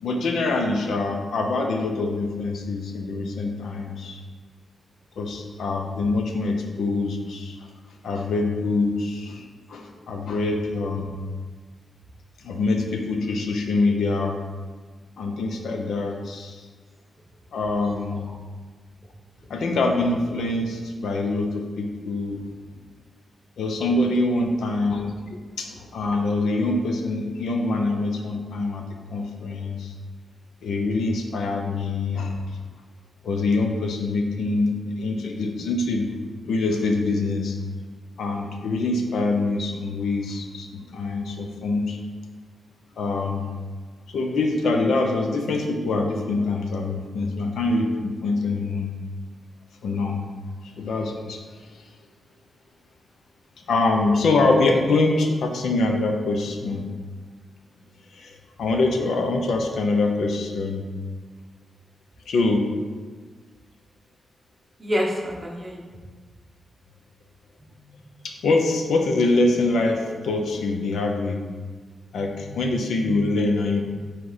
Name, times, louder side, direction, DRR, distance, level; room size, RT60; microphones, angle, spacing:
voice 1, 0.0-4.2 5.2-7.7 8.0-11.2 12.4-14.4 15.2-16.6 17.5-18.3 19.5-22.4 23.6-25.2 25.6-29.9 30.6-32.4 33.2-36.1 36.5-37.6 38.2-42.0 43.0-43.5 44.1-48.9 49.8-50.2 50.6-51.8 53.7-56.8 58.1-60.8 62.3-62.7 68.2-71.4 72.1-73.8, left 2 dB, 75° left, 3 dB, 0.7 m, -24 dB
voice 2, 64.8-65.9 67.6-68.0 72.2-72.5, equal, 15° right, -3 dB, 1.1 m, -29 dB
7.8 x 4.2 x 4.1 m, 1.4 s
wide cardioid pair, 160°, 0 cm